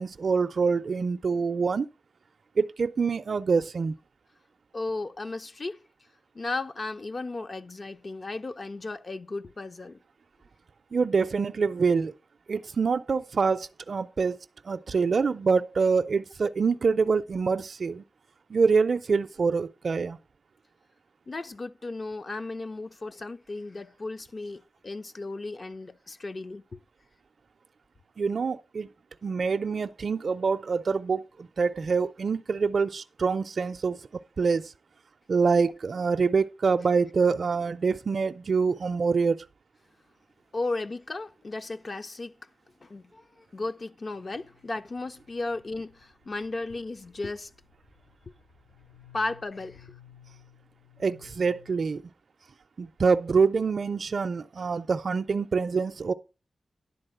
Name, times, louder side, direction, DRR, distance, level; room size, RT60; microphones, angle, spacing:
voice 1, 0.0-1.9 2.6-3.9 10.9-12.1 12.5-14.4 14.6-18.0 18.5-20.2 28.2-28.9 29.2-34.0 34.4-34.7 35.3-39.4 51.0-52.0 52.8-56.1, right 5 dB, 60° right, 0.4 m, -25 dB
voice 2, 4.7-5.8 6.3-10.0 21.3-26.8 35.5-35.7 40.5-42.4 42.8-47.5 49.1-50.0, left 3 dB, 40° left, 0.5 m, -35 dB
sound 1, 44.1-51.9, left 9 dB, 70° left, 1.9 m, -57 dB
10.5 x 4.2 x 7.7 m
wide cardioid pair, 150°, 0 cm